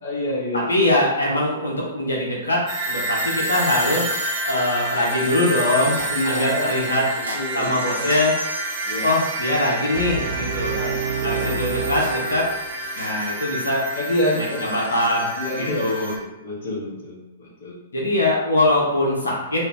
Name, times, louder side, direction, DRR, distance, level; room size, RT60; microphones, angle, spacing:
voice 1, 0.0-0.7 6.1-7.0 7.3-7.7 8.8-9.1 10.7-11.6 13.9-14.7 15.4-17.7, left 1 dB, 55° left, -5 dB, 1.2 m, -28 dB
voice 2, 0.5-4.1 4.5-7.1 7.5-8.4 9.0-10.8 11.2-12.5 13.0-13.9 14.4-16.1 17.9-19.7, left 1 dB, 75° left, -4 dB, 0.9 m, -22 dB
sound 1, 2.7-16.2, right 1 dB, 40° right, 0.9 m, -28 dB
sound 2, 4.8-5.3 6.0-6.9 7.2-10.5 11.2-13.8, left 1 dB, 75° right, 0.9 m, -40 dB
Brass instrument, 9.9-13.0, right 6 dB, 60° right, 0.4 m, -28 dB
3.2 x 2.6 x 3.4 m, 0.93 s
figure-of-eight pair, 110°, 0 cm